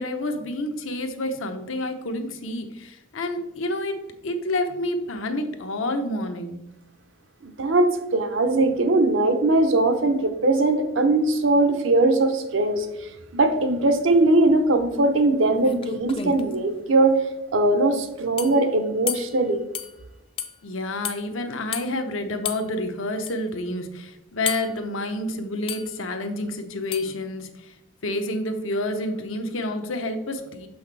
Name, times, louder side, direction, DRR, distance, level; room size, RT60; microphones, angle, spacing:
voice 1, 0.0-6.6 20.6-27.7 28.0-30.7, left 1 dB, 80° left, 6 dB, 0.8 m, -29 dB
voice 2, 7.4-12.9 13.3-17.2 17.5-19.6, right 2 dB, 75° right, 7 dB, 0.7 m, -20 dB
sound 1, 15.2-15.3 15.6-16.5 18.4-18.6 19.1-19.3 19.7-19.9 20.4-20.5 21.0-21.2 21.7-21.9 22.4-22.6 23.3-23.4 24.5-24.8 25.7-25.9 26.9-27.1, left 7 dB, 25° left, 0.3 m, -31 dB
6.5 x 5.6 x 3.3 m, 0.94 s
head